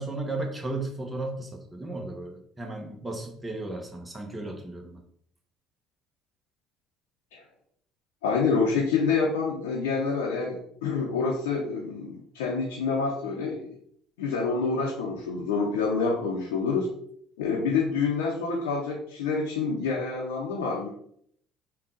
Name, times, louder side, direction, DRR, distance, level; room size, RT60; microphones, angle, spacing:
voice 1, 0.0-5.0, right 2 dB, 15° right, 1 dB, 0.8 m, -35 dB
voice 2, 8.2-13.7 14.2-16.9 17.4-20.9, left 4 dB, 85° left, -2 dB, 0.6 m, -27 dB
3.7 x 2.3 x 3.8 m, 0.65 s
hypercardioid pair, 70°, 0 cm